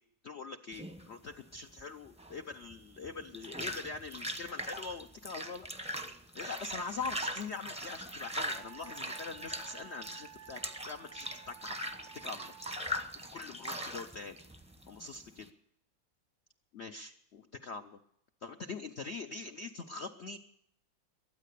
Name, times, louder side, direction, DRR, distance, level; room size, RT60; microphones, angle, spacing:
voice 1, 0.2-5.7 6.3-11.8 12.1-12.5 13.2-14.4 14.9-15.5 16.7-18.0 18.4-20.4, left 4 dB, 90° left, 7 dB, 0.6 m, -43 dB
sound 1, 0.7-15.5, equal, 5° right, 0.5 m, -41 dB
Wind instrument woodwind instrument, 8.5-12.8, right 11 dB, 85° right, 2.4 m, -54 dB
22.0 x 9.2 x 6.7 m, 0.75 s
omnidirectional pair, 2.1 m